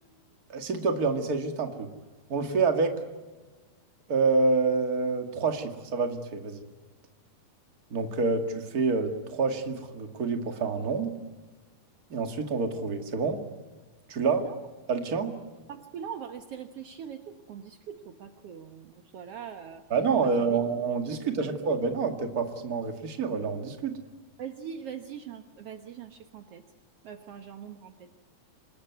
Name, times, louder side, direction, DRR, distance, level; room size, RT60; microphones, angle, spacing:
voice 1, 0.5-1.9 2.3-2.9 4.1-6.6 7.9-11.1 12.1-13.4 14.1-14.4 14.9-15.3 19.9-24.0, right 4 dB, 35° right, 6 dB, 1.7 m, -27 dB
voice 2, 15.7-19.8 20.2-20.6 21.4-21.8 24.4-26.6 27.0-28.1, right 8 dB, 75° right, 7 dB, 1.4 m, -42 dB
26.5 x 20.0 x 9.4 m, 1.3 s
omnidirectional pair, 4.4 m